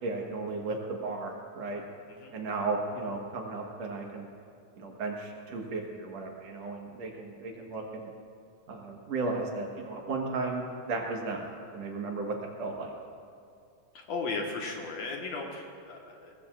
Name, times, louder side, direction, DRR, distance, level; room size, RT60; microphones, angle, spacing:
voice 1, 0.0-1.8 2.3-4.3 4.8-8.1 8.7-11.4 11.7-12.9, right 3 dB, 60° right, 0 dB, 2.4 m, -35 dB
voice 2, 13.9-16.3, left 3 dB, 65° left, 0 dB, 2.6 m, -36 dB
23.0 x 18.5 x 2.5 m, 2.3 s
omnidirectional pair, 3.5 m